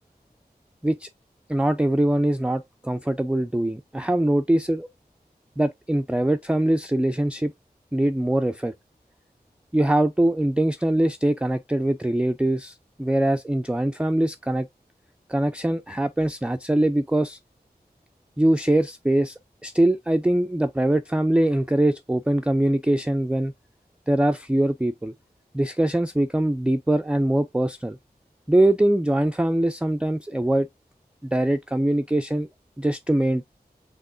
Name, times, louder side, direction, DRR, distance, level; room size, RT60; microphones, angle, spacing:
voice 1, 1.5-4.9 5.6-7.5 7.9-8.7 9.7-14.7 15.3-17.4 18.4-23.5 24.1-25.1 25.5-28.0 28.5-30.7 31.2-32.5 32.8-33.4, right 1 dB, 5° right, 0.3 m, -22 dB
5.9 x 3.3 x 2.5 m
wide cardioid pair, 50°, 17 cm